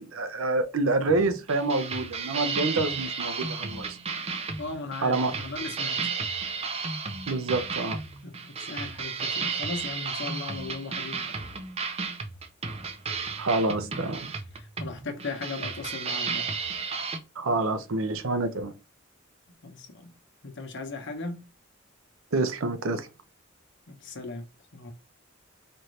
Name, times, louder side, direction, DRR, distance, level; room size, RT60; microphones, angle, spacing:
voice 1, 0.0-4.0 5.0-5.3 7.3-8.0 13.4-14.4 17.4-18.7 22.3-23.1, right 3 dB, 75° right, 0.6 m, -27 dB
sound 1, 1.1-17.2, right 5 dB, 30° right, 0.5 m, -33 dB
voice 2, 4.6-6.0 8.2-11.3 14.5-16.5 19.6-20.1 20.4-21.4 23.9-24.4 24.7-24.9, left 3 dB, 60° left, 0.9 m, -37 dB
4.3 x 2.6 x 3.1 m
head